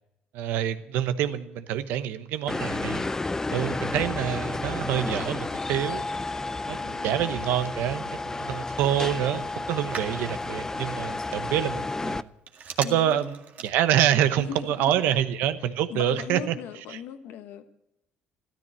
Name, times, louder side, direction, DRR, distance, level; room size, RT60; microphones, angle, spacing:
voice 1, 0.3-3.1 3.5-6.1 6.7-12.3 12.8-16.5, right 11 dB, 85° right, 11 dB, 1.0 m, -26 dB
sound 1, 2.5-12.2, left 3 dB, 15° left, 0.4 m, -31 dB
Telephone, 4.7-14.3, right 6 dB, 55° right, 1.9 m, -46 dB
voice 2, 6.6-7.5 12.8-13.3 14.4-14.6 15.9-17.7, left 9 dB, 80° left, 9 dB, 1.3 m, -39 dB
13.5 x 13.5 x 7.5 m, 0.86 s
cardioid pair, 100°, 3 cm